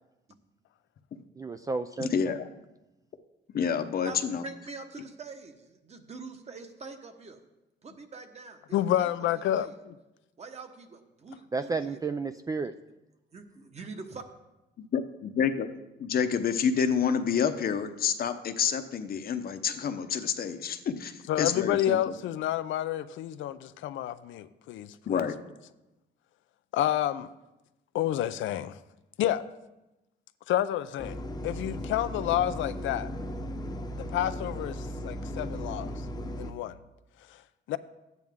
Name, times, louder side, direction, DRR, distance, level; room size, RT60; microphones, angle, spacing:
voice 1, 1.4-2.3 11.5-12.7, right 4 dB, 20° right, 10 dB, 0.3 m, -32 dB
voice 2, 2.0-2.4 3.5-4.4 14.8-15.7 16.0-22.0 25.1-25.3, left 7 dB, 50° left, 9 dB, 0.8 m, -28 dB
voice 3, 4.4-7.4 7.8-9.7 10.4-12.0 13.3-14.2, right 4 dB, 35° right, 6 dB, 1.2 m, -44 dB
voice 4, 8.7-9.9 21.3-25.2 26.7-27.3 27.9-28.8 29.2-29.4 30.5-31.2 31.4-33.1 34.0-35.9 36.4-36.8 37.7-37.8, left 12 dB, 85° left, 13 dB, 0.5 m, -29 dB
sound 1, 31.0-36.5, equal, 20° left, 0.8 m, -36 dB
13.0 x 9.2 x 3.6 m, 0.98 s
cardioid pair, 120°, 19 cm